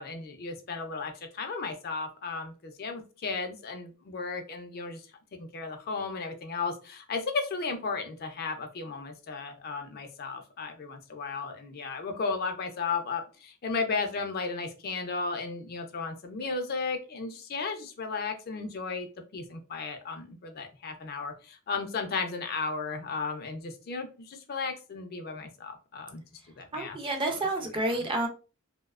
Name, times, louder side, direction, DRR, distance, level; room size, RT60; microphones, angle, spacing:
voice 1, 0.0-5.0 5.4-19.1 19.3-26.2 26.6-27.0 27.3-28.1, left 4 dB, 45° left, 5 dB, 0.4 m, -35 dB
voice 2, 26.7-28.3, right 2 dB, 25° right, 3 dB, 0.4 m, -29 dB
2.6 x 2.1 x 2.3 m, 0.34 s
head